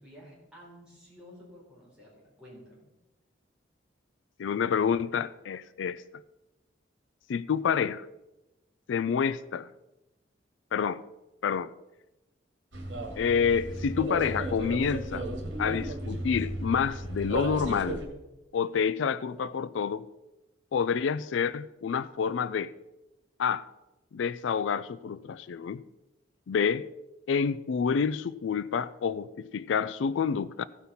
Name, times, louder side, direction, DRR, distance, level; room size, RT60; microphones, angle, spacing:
voice 1, 0.0-2.8, equal, 5° right, 4.6 m, -51 dB
voice 2, 4.4-6.0 7.3-8.1 8.9-9.7 10.7-11.0 11.4-11.7 13.2-15.3 15.6-18.0 18.5-20.1 20.7-22.7 23.4-23.6 24.1-25.8 26.5-26.9 27.3-30.7, left 6 dB, 85° left, 0.4 m, -28 dB
sound 1, 12.7-18.1, right 1 dB, 80° right, 2.3 m, -34 dB
15.5 x 5.6 x 5.7 m
head